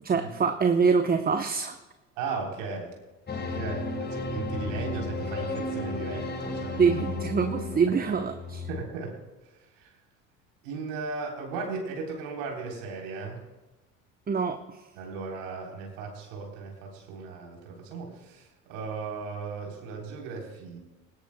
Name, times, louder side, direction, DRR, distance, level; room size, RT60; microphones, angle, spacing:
voice 1, 0.0-1.7 6.8-8.7 14.3-14.6, right 5 dB, 25° right, 7 dB, 0.9 m, -25 dB
voice 2, 2.2-2.9 3.5-7.0 8.0-8.1 8.7-9.2 9.8-9.9 10.6-13.4 15.0-20.8, right 4 dB, 70° right, 0 dB, 3.7 m, -36 dB
sound 1, 3.3-8.8, left 3 dB, 25° left, 1.7 m, -33 dB
19.5 x 17.0 x 2.2 m, 1.1 s
hypercardioid pair, 70°, 39 cm